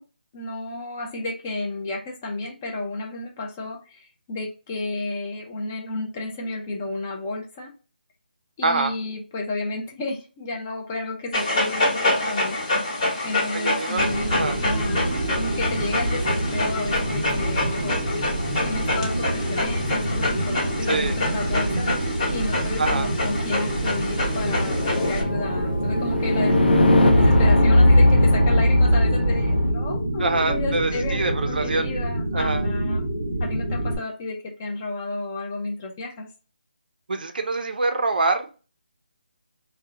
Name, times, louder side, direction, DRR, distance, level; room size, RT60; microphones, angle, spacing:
voice 1, 0.3-7.7 8.6-12.6 13.2-15.0 15.4-18.0 18.6-26.6 27.2-33.0 33.4-36.3, left 2 dB, 15° left, 2 dB, 0.4 m, -32 dB
Dog, 11.3-25.2, left 2 dB, 35° left, 1.0 m, -27 dB
voice 2, 13.5-14.0 14.3-14.6 20.9-21.2 22.8-23.1 30.2-31.9 32.3-32.7 37.1-38.6, right 3 dB, 60° right, 6 dB, 0.4 m, -25 dB
sound 1, 14.0-34.0, right 1 dB, 40° right, 0.8 m, -27 dB
sound 2, 24.1-29.7, left 1 dB, 75° left, 0.6 m, -18 dB
2.6 x 2.0 x 2.5 m, 0.34 s
figure-of-eight pair, 170°, 5 cm